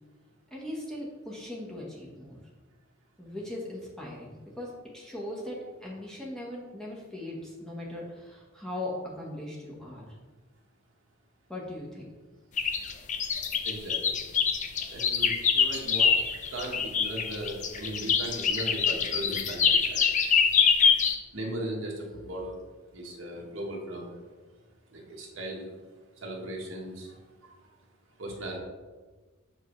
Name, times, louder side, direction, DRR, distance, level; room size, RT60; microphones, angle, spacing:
voice 1, 0.5-2.4 3.2-10.0 11.5-12.1, left 1 dB, 5° left, -4 dB, 1.0 m, -39 dB
sound 1, 12.6-21.2, left 6 dB, 35° left, 0.5 m, -25 dB
voice 2, 13.6-14.2 14.9-16.1 16.5-20.0 21.3-22.5 22.9-24.2 24.9-25.7 26.2-27.1 28.2-28.6, right 1 dB, 65° right, 0 dB, 1.2 m, -37 dB
7.1 x 4.7 x 3.1 m, 1.3 s
head